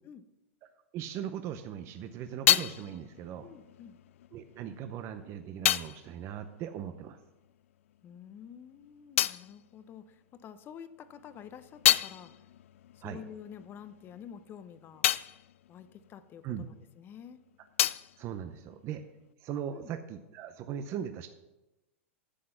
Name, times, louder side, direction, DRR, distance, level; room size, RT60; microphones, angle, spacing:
voice 1, 0.9-3.5 4.3-7.2 13.0-13.2 16.4-16.7 18.2-19.0 19.4-21.3, right 9 dB, 40° right, 8 dB, 0.6 m, -39 dB
sound 1, 1.6-7.6 7.9-10.6 11.0-17.0 17.3-19.3, left 13 dB, 75° left, 0.3 m, -32 dB
voice 2, 3.4-4.0 8.0-12.4 12.9-15.1 15.7-17.4 19.7-19.9, left 8 dB, 30° left, 13 dB, 0.7 m, -49 dB
10.0 x 7.6 x 5.7 m, 1.0 s
hypercardioid pair, 120°, 7 cm